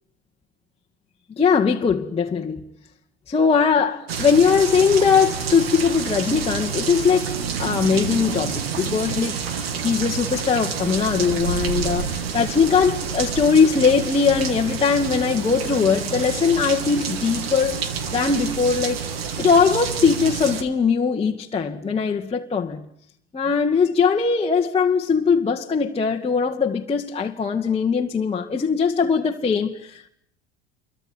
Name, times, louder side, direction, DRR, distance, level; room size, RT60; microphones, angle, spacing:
voice 1, 1.4-2.6 3.3-7.3 7.6-19.0 19.4-22.8 23.3-30.1, left 5 dB, 20° left, 1.9 m, -20 dB
sound 1, 4.1-20.6, right 6 dB, 75° right, 2.9 m, -28 dB
28.0 x 24.0 x 8.9 m
figure-of-eight pair, 70°, 31 cm